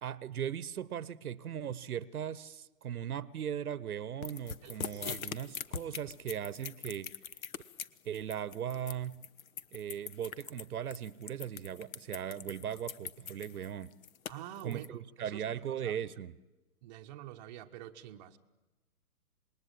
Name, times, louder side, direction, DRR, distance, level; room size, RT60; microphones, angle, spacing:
voice 1, 0.0-7.1 8.0-9.2 9.7-13.9 14.6-16.4, right 9 dB, 65° right, 1.0 m, -38 dB
sound 1, 4.2-14.9, left 8 dB, 60° left, 1.1 m, -42 dB
voice 2, 4.6-5.2 14.3-16.0 16.8-18.4, right 12 dB, 25° right, 0.9 m, -47 dB
27.0 x 20.5 x 8.9 m
hypercardioid pair, 135°, 47 cm